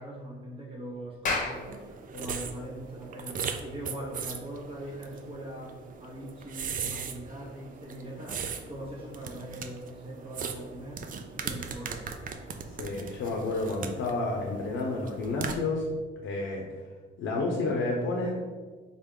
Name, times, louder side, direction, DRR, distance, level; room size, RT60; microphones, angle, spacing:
voice 1, 0.0-12.1, right 1 dB, 30° right, -3 dB, 0.8 m, -42 dB
Clapping, 1.0-5.9, left 3 dB, 40° left, 0.8 m, -37 dB
sound 1, 1.5-15.6, right 6 dB, 45° right, 0.4 m, -39 dB
voice 2, 12.8-15.9 16.2-16.6 17.2-18.4, left 2 dB, 75° left, 0 dB, 0.6 m, -30 dB
3.8 x 2.3 x 3.5 m, 1.4 s
cardioid pair, 90°, 20 cm